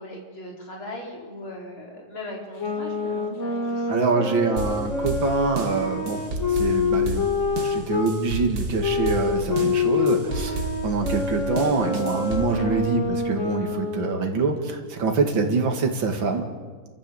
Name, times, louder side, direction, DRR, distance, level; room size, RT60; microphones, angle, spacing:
voice 1, 0.0-4.3 12.5-12.8, left 1 dB, 85° left, -2 dB, 5.5 m, -39 dB
sound 1, 2.6-8.1 8.8-14.3, left 4 dB, 40° left, 2.1 m, -26 dB
voice 2, 3.9-7.3 7.6-16.5, right 4 dB, 70° right, 4 dB, 2.8 m, -25 dB
sound 2, 4.6-12.6, right 2 dB, 50° right, 2.5 m, -32 dB
30.0 x 14.0 x 7.9 m, 1.5 s
omnidirectional pair, 2.2 m